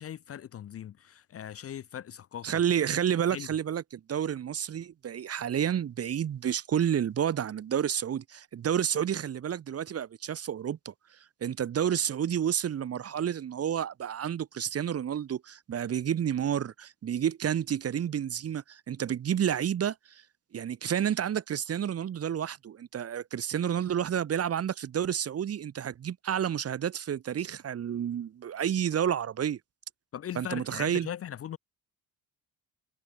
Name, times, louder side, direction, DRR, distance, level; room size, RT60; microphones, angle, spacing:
voice 1, 0.0-2.6 3.3-3.5 30.1-31.6, left 10 dB, 40° left, 0.5 m, -39 dB
voice 2, 2.4-10.9 11.4-20.2 20.5-29.6 30.4-31.1, right 9 dB, 40° right, 0.9 m, -30 dB
cardioid pair, 135°, 37 cm